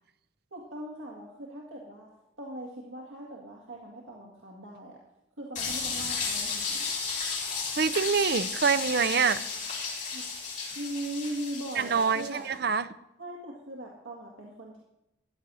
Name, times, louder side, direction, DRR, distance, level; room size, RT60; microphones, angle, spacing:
voice 1, 0.5-5.0 5.4-6.9 10.1-10.2 10.7-12.5 13.2-14.8, right 1 dB, 85° right, -2 dB, 1.9 m, -40 dB
sound 1, 5.5-12.4, left 5 dB, 40° left, 3.9 m, -33 dB
voice 2, 7.8-9.4 11.8-12.9, right 5 dB, 50° right, 13 dB, 0.5 m, -25 dB
14.5 x 9.9 x 6.3 m, 0.88 s
head